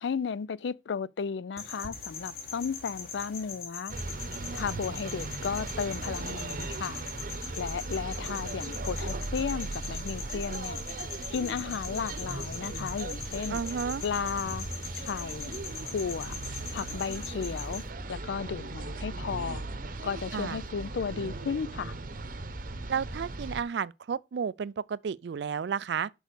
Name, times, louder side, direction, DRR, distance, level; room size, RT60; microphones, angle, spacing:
voice 1, 0.0-3.9 4.5-7.0 7.6-10.8 11.3-13.6 14.0-14.7 15.0-15.6 15.9-16.4 16.7-17.8 18.1-19.6 20.0-21.9, left 6 dB, 70° left, 0.4 m, -34 dB
sound 1, 1.6-17.9, left 5 dB, 55° left, 3.2 m, -42 dB
sound 2, 3.9-23.6, right 2 dB, 50° right, 0.8 m, -38 dB
voice 2, 13.5-14.0 20.3-20.6 22.9-26.1, right 6 dB, 65° right, 0.3 m, -32 dB
6.2 x 5.1 x 6.6 m
head